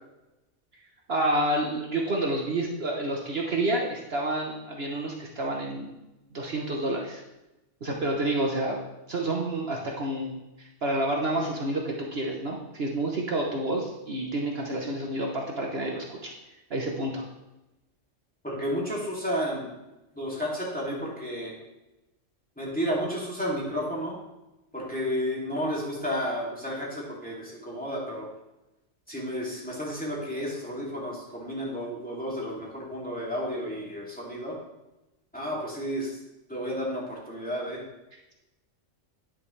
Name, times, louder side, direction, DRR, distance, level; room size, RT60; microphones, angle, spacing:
voice 1, 1.1-6.0 6.3-7.2 7.8-8.8 9.1-16.3 16.7-17.2, right 1 dB, 55° right, 0 dB, 1.2 m, -29 dB
voice 2, 18.4-19.7 20.2-21.5 22.6-24.2 24.7-28.3 29.1-34.6 35.3-36.1 36.5-37.8, equal, 5° left, -5 dB, 2.6 m, -32 dB
9.9 x 9.0 x 3.2 m, 0.97 s
omnidirectional pair, 1.3 m